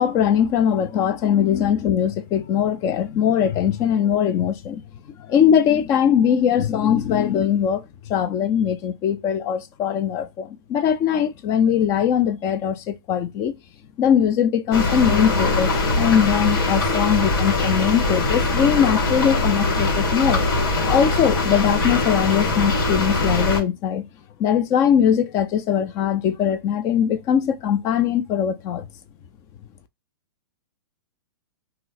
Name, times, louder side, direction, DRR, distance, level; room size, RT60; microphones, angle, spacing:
voice 1, 0.0-4.8 5.2-7.8 8.1-13.5 14.0-15.7 16.0-20.4 20.9-24.1 24.4-28.9, left 8 dB, 25° left, 0.4 m, -21 dB
sound 1, 14.7-23.6, left 2 dB, 65° left, 1.7 m, -22 dB
2.7 x 2.0 x 3.9 m
hypercardioid pair, 150°, 12 cm